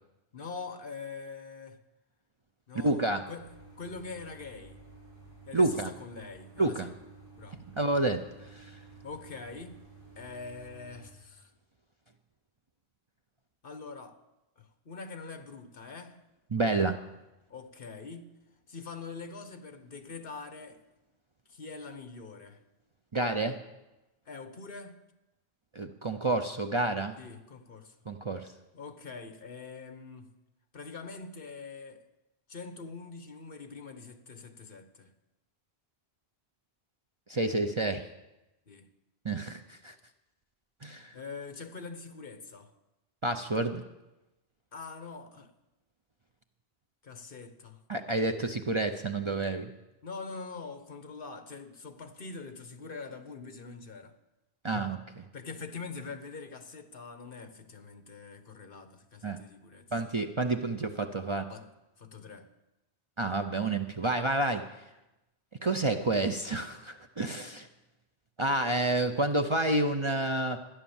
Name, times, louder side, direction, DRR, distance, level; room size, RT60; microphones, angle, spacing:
voice 1, 0.3-1.8 2.7-3.5 3.8-4.8 5.5-6.9 7.3-7.6 9.0-9.8 10.2-11.5 13.6-14.2 14.6-16.2 17.5-18.3 18.7-20.8 21.5-22.6 24.3-25.0 27.2-28.0 28.7-30.3 30.7-32.0 32.5-35.1 38.7-38.9 41.1-42.7 44.7-45.5 47.0-47.8 50.0-54.1 54.7-54.9 55.3-59.9 61.5-61.7 62.0-62.5, left 4 dB, 60° left, 1.3 m, -44 dB
voice 2, 2.8-3.2 5.5-5.9 6.6-6.9 7.8-8.2 8.5-8.7 16.5-17.0 23.1-23.6 25.7-27.2 28.1-28.5 37.3-38.0 39.2-39.9 40.8-41.1 43.2-43.8 47.9-49.7 54.6-55.2 59.2-59.4 59.9-61.5 63.2-64.6 65.6-67.7 68.4-70.6, right 2 dB, 35° right, 0.7 m, -29 dB
sound 1, 3.4-11.1, right 3 dB, 20° left, 4.4 m, -53 dB
13.5 x 10.5 x 7.2 m
omnidirectional pair, 1.1 m